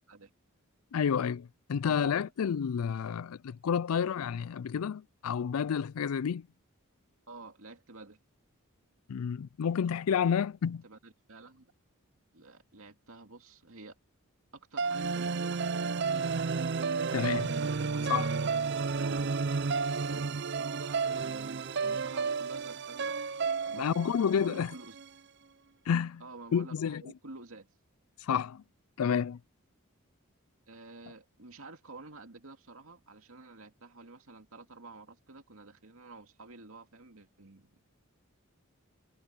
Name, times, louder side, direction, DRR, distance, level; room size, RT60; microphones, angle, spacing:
voice 1, 0.9-6.5 9.1-10.8 17.1-17.5 18.1-18.3 23.7-24.7 25.9-26.2 26.5-27.0 28.2-28.6 29.0-29.4, left 7 dB, 85° left, 0.4 m, -30 dB
voice 2, 7.3-8.2 10.3-10.4 10.8-11.7 12.3-14.0 14.5-16.2 17.8-18.1 18.9-19.5 20.0-23.1 23.7-25.0 26.2-27.7 30.7-37.8, right 3 dB, 75° right, 2.4 m, -50 dB
sound 1, 14.8-25.0, right 5 dB, 50° right, 0.5 m, -32 dB
head